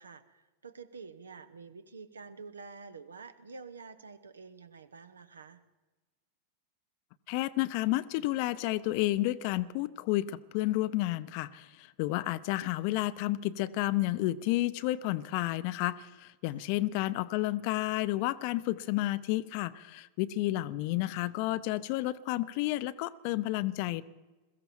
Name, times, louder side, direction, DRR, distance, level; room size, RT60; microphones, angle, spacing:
voice 1, 0.0-5.6 16.5-16.6, right 4 dB, 70° right, 13 dB, 0.9 m, -48 dB
voice 2, 7.3-24.0, left 17 dB, 45° left, 16 dB, 0.6 m, -31 dB
22.0 x 14.5 x 4.5 m, 1.2 s
figure-of-eight pair, 90°, 0 cm